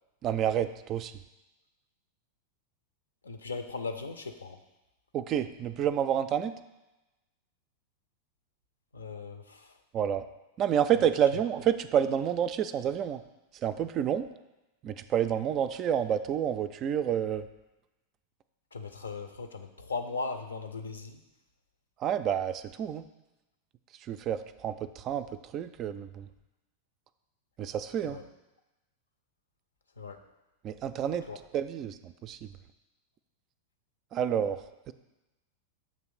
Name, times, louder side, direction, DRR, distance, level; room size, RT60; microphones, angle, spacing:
voice 1, 0.2-1.1 5.1-6.6 9.9-10.3 10.6-13.2 13.6-14.3 14.8-17.5 22.0-23.1 24.0-26.3 27.6-28.2 30.6-31.3 31.5-32.5 34.1-34.9, right 9 dB, 35° right, 11 dB, 0.3 m, -29 dB
voice 2, 3.2-4.6 8.9-9.8 18.7-21.2 28.0-28.2 30.0-30.3 31.3-31.4, left 4 dB, 75° left, 7 dB, 0.6 m, -38 dB
7.0 x 3.1 x 6.0 m, 1.0 s
figure-of-eight pair, 90°, 0 cm